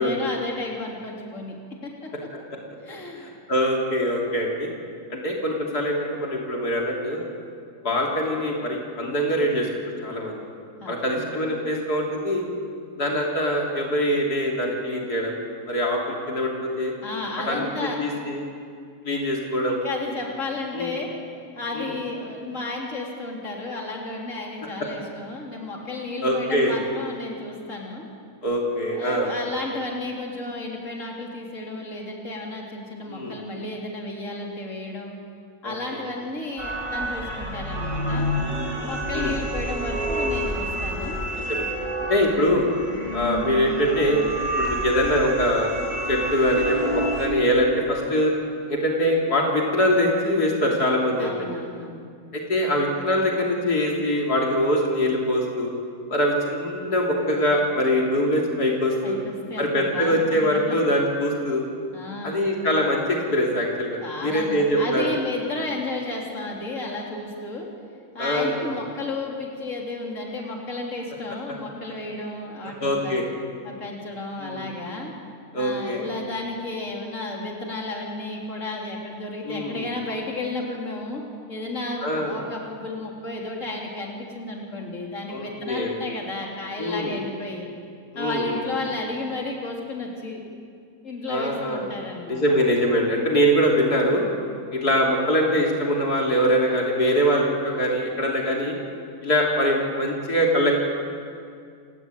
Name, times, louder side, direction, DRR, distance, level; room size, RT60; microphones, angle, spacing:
voice 1, 0.0-1.6 1.8-2.1 2.8-3.3 10.8-11.3 17.0-18.0 19.7-21.1 21.6-28.0 28.9-35.1 35.6-38.3 38.8-41.2 51.2-52.0 59.0-60.8 61.9-62.4 64.0-67.7 68.1-73.2 73.6-75.1 75.6-81.2 81.5-87.7 88.2-90.4 91.0-92.4, left 2 dB, 55° left, -1 dB, 4.0 m, -33 dB
voice 2, 3.5-4.7 5.1-7.2 7.8-9.7 10.0-10.4 10.9-12.5 13.0-15.4 15.7-16.9 17.5-17.7 18.0-18.4 19.0-19.8 20.7-20.9 21.7-21.9 26.2-26.7 28.4-29.3 33.1-33.3 35.6-35.7 38.4-39.3 41.5-41.7 42.1-42.7 43.1-44.2 44.6-45.7 46.1-48.3 48.7-51.5 52.3-55.7 56.1-59.2 59.6-61.6 62.2-65.2 68.2-68.8 72.8-73.3 74.4-74.7 75.5-76.0 79.4-79.9 82.0-82.5 85.3-85.9 86.8-87.1 88.1-88.6 91.3-91.9 92.3-94.2 94.7-98.8 99.2-100.8, equal, 85° left, -1 dB, 3.8 m, -23 dB
sound 1, 36.6-47.3, equal, 25° right, 4.3 m, -29 dB
27.5 x 18.0 x 9.3 m, 2.3 s
omnidirectional pair, 1.6 m